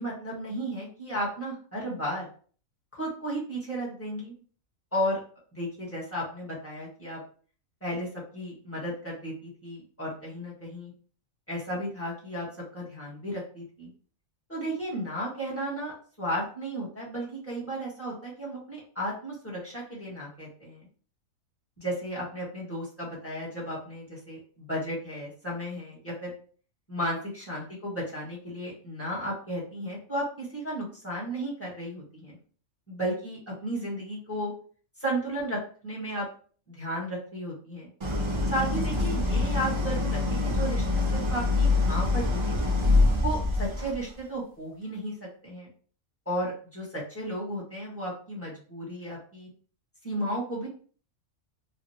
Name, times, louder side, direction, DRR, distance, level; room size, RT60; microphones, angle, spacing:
voice 1, 0.0-2.3 2.9-4.3 4.9-5.2 5.5-7.2 7.8-8.1 8.3-10.9 11.5-12.5 12.7-13.9 14.5-20.9 21.8-26.3 26.9-32.4 32.9-34.5 35.0-36.3 36.7-37.9 38.4-42.7 43.2-45.7 46.2-49.5 50.0-50.7, equal, 10° left, -5 dB, 1.2 m, -34 dB
Idling, 38.0-44.1, left 3 dB, 50° right, 0.3 m, -25 dB
3.2 x 2.5 x 2.7 m, 0.43 s
omnidirectional pair, 1.4 m